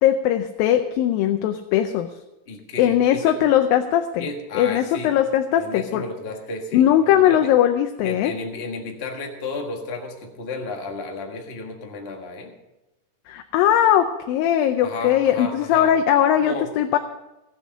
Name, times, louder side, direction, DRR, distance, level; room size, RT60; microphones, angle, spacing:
voice 1, 0.0-2.1 2.8-4.3 4.6-6.0 6.7-8.3 13.3-17.0, left 10 dB, 90° left, 6 dB, 2.5 m, -19 dB
voice 2, 2.5-3.4 4.2-5.2 5.6-7.5 8.0-12.5 14.8-15.9 16.3-16.7, left 3 dB, 60° left, 2 dB, 0.6 m, -33 dB
16.5 x 8.3 x 6.3 m, 0.99 s
omnidirectional pair, 4.0 m